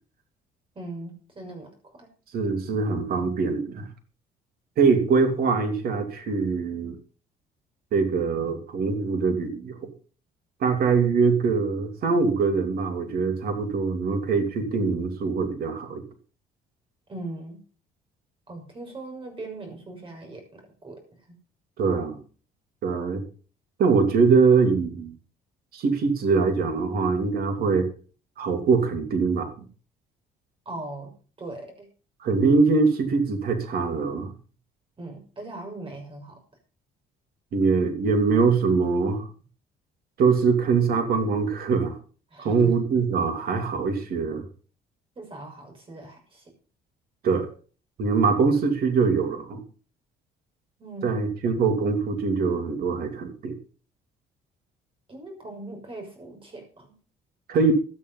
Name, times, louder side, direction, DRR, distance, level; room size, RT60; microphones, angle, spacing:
voice 1, 0.7-2.1 17.1-17.6 18.5-21.0 30.6-31.1 31.4-31.7 35.0-36.4 42.3-42.7 45.2-46.5 50.8-51.3 55.1-56.9, right 2 dB, 30° right, 3 dB, 6.4 m, -39 dB
voice 2, 2.3-3.9 4.8-6.9 7.9-9.9 10.6-16.0 21.8-22.2 22.8-23.2 23.8-25.1 25.7-27.9 28.4-29.5 32.2-34.3 37.5-39.3 40.2-42.0 42.4-44.4 47.2-47.5 48.0-49.6 51.0-53.6 57.5-57.7, right 4 dB, 65° right, 6 dB, 3.0 m, -23 dB
12.5 x 9.4 x 5.5 m, 0.39 s
cardioid pair, 110°, 17 cm